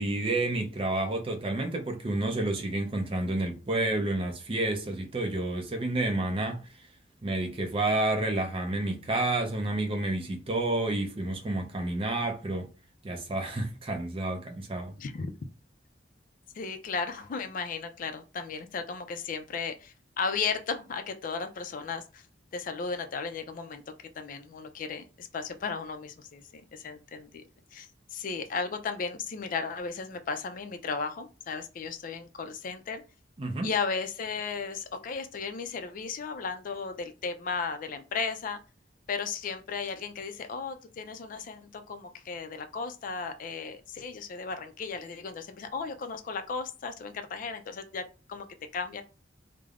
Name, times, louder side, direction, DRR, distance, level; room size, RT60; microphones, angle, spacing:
voice 1, 0.0-6.6 7.2-12.7 13.0-14.9 33.4-33.7, right 2 dB, 30° right, 0.5 m, -30 dB
voice 2, 15.0-15.3 16.5-22.2 22.5-23.8 24.2-27.4 27.7-33.0 33.6-38.6 39.1-48.0 48.3-48.5 48.7-49.0, left 5 dB, 50° left, 0.3 m, -35 dB
3.2 x 2.0 x 2.3 m
head